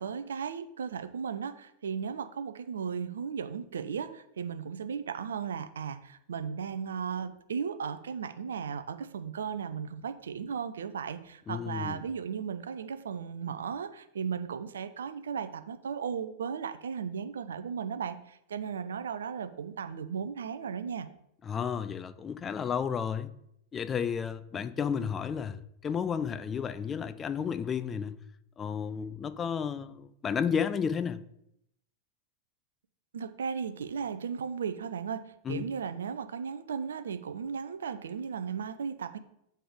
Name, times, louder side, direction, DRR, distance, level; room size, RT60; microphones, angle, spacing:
voice 1, 0.0-21.1 33.1-39.2, right 6 dB, 65° right, 0.5 m, -36 dB
voice 2, 11.5-12.0 21.5-23.3 23.7-28.2 28.6-31.2 35.5-35.6, left 7 dB, 20° left, 0.4 m, -32 dB
7.8 x 3.3 x 4.9 m
figure-of-eight pair, 90°, 0 cm